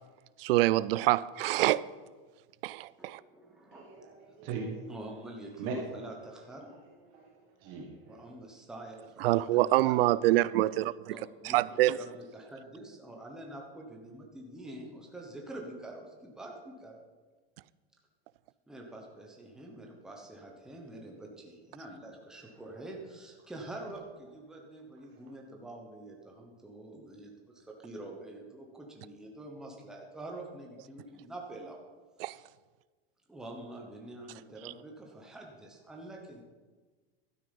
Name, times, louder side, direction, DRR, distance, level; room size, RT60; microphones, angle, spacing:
voice 1, 0.4-1.9 2.6-3.2 9.2-11.1 11.4-12.0 32.2-32.4, right 16 dB, 65° right, 0.5 m, -26 dB
voice 2, 3.0-3.9 4.9-6.7 8.0-10.0 11.1-11.6 11.9-16.9 18.7-31.8 32.2-32.5 33.3-36.4, right 1 dB, ahead, 0.9 m, -46 dB
voice 3, 3.7-4.7 5.6-5.7 7.1-7.3 7.6-8.2, right 6 dB, 35° right, 1.5 m, -39 dB
12.5 x 9.4 x 5.3 m
supercardioid pair, 180°, 32 cm